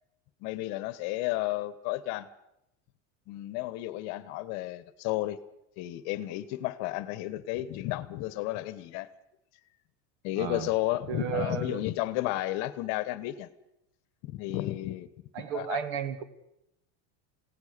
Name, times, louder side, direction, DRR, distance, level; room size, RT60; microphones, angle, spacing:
voice 1, 0.4-2.3 3.3-5.4 5.8-9.1 10.2-13.5 14.2-15.1 15.5-15.8, left 16 dB, 45° left, 16 dB, 1.2 m, -32 dB
voice 2, 10.4-10.7 11.1-11.8 15.3-16.2, right 8 dB, 60° right, 12 dB, 2.2 m, -33 dB
28.5 x 17.5 x 6.7 m, 0.83 s
cardioid pair, 175°, 39 cm